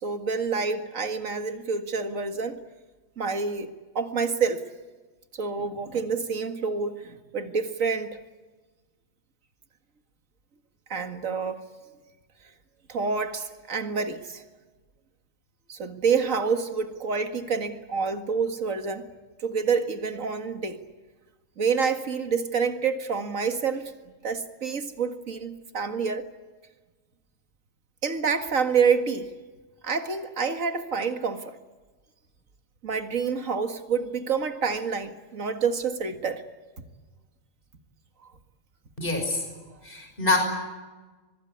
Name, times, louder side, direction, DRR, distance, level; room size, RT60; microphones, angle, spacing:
voice 1, 0.0-2.6 3.2-4.6 5.3-8.2 10.9-11.6 12.9-14.4 15.7-19.1 19.4-20.8 21.6-23.9 24.2-26.2 28.0-29.3 29.8-31.6 32.8-36.4, right 5 dB, 85° right, 8 dB, 2.3 m, -27 dB
voice 2, 39.0-39.5 39.8-40.4, left 3 dB, 40° left, 4 dB, 6.1 m, -25 dB
24.0 x 22.0 x 9.6 m, 1.3 s
omnidirectional pair, 1.3 m